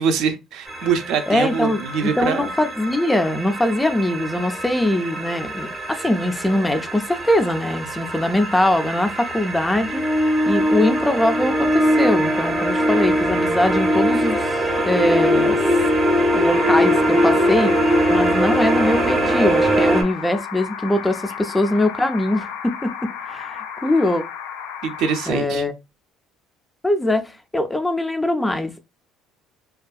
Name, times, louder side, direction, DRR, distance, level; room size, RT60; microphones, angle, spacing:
voice 1, 0.0-2.5 24.8-25.6, right 6 dB, 70° right, 0.5 m, -23 dB
sound 1, 0.7-20.0, equal, 15° right, 0.7 m, -21 dB
voice 2, 1.3-10.0 10.5-15.8 16.3-17.7 18.1-24.2 25.3-25.7 26.8-28.8, left 1 dB, 10° left, 0.3 m, -22 dB
sound 2, 16.5-25.3, left 8 dB, 85° left, 0.4 m, -33 dB
2.6 x 2.3 x 2.3 m
cardioid pair, 125°, 0 cm